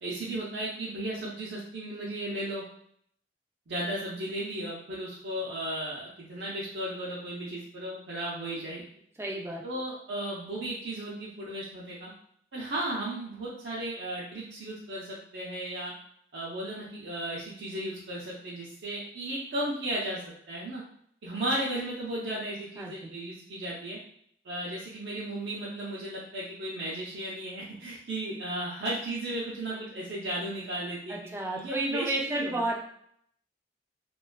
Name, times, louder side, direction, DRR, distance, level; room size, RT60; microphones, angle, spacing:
voice 1, 0.0-2.6 3.7-8.8 9.6-12.1 12.5-15.9 16.3-20.2 20.5-20.8 21.2-24.0 24.4-32.6, right 1 dB, 75° right, -7 dB, 0.5 m, -35 dB
voice 2, 9.2-9.6 22.8-23.1 31.1-32.8, right 2 dB, 15° right, 0 dB, 0.3 m, -32 dB
2.4 x 2.3 x 2.2 m, 0.66 s
head